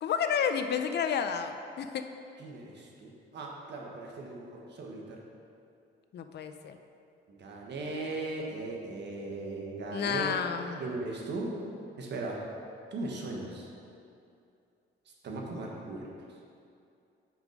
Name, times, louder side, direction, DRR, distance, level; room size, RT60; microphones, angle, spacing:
voice 1, 0.0-2.0 6.1-6.8 9.9-10.8, left 7 dB, 55° left, 8 dB, 0.5 m, -31 dB
voice 2, 2.4-5.2 7.4-10.3 10.8-11.5 12.0-12.4 12.9-13.6 15.2-16.1, right 2 dB, 60° right, -1 dB, 1.3 m, -38 dB
6.1 x 5.4 x 5.1 m, 2.6 s
cardioid pair, 90°, 20 cm